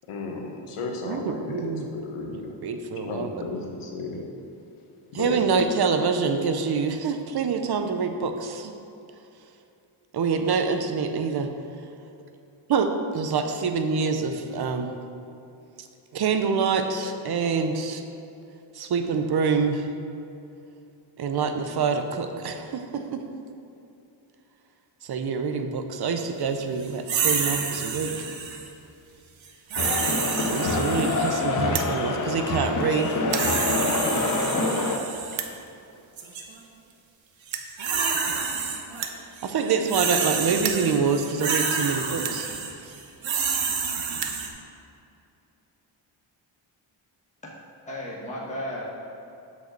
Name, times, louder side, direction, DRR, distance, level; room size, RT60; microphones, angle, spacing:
voice 1, 0.1-2.8 3.1-4.3 5.1-5.4, left 3 dB, 85° left, 1 dB, 1.3 m, -34 dB
voice 2, 1.1-1.9 2.2-3.3 5.1-8.7 10.1-11.5 12.7-15.0 15.8-15.9 16.1-18.0 18.7-19.9 21.2-23.2 25.0-28.3 30.5-33.4 39.1-42.5 42.8-42.9, right 5 dB, 50° right, 6 dB, 0.7 m, -26 dB
sound 1, 27.1-28.7 29.7-31.6 33.0-35.5 36.2-36.4 37.5-39.1 39.4-44.5, right 5 dB, 70° right, 1.1 m, -28 dB
sound 2, 29.8-35.0, left 3 dB, 40° left, 0.7 m, -26 dB
sound 3, 31.7-31.9 32.6-32.8 33.1-33.5 34.3-34.4 35.3-35.6 36.6-36.7 36.9-37.0 37.5-37.7 38.9-40.2 40.5-40.9 41.6-41.7 42.2-42.4 43.3-43.4 43.7-43.8 44.0-44.4, right 9 dB, 90° right, 0.8 m, -33 dB
voice 3, 47.9-48.8, left 1 dB, 15° left, -5 dB, 1.1 m, -34 dB
6.5 x 5.3 x 6.5 m, 2.7 s
wide cardioid pair, 130°, 49 cm